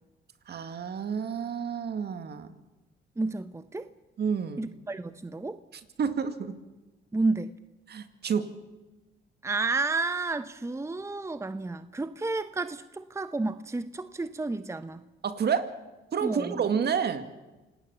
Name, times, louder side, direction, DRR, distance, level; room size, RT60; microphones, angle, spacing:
voice 1, 0.5-2.5 4.2-4.7 5.7-6.5 7.9-8.5 15.2-15.7 16.1-17.3, right 7 dB, 55° right, 2.2 m, -29 dB
voice 2, 3.2-3.9 4.6-5.6 7.1-7.5 9.4-15.0 16.2-16.6, right 3 dB, 15° right, 0.9 m, -31 dB
27.0 x 18.5 x 7.3 m
cardioid pair, 90°, 20 cm